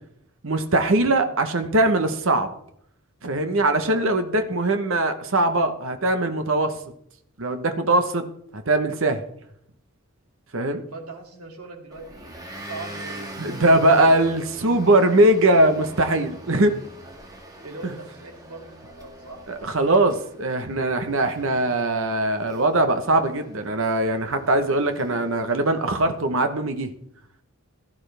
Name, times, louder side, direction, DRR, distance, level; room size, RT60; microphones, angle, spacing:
voice 1, 0.4-2.5 3.2-6.7 7.4-8.2 8.5-9.2 10.5-10.8 13.4-16.8 17.8-17.9 19.5-26.9, right 1 dB, 60° right, 8 dB, 1.0 m, -21 dB
voice 2, 10.9-13.9 14.2-14.3 17.6-19.4, right 3 dB, 90° right, 2 dB, 2.4 m, -40 dB
Motor vehicle (road) / Engine, 11.9-26.1, right 1 dB, 15° right, 1.7 m, -43 dB
16.0 x 11.5 x 3.4 m, 0.71 s
head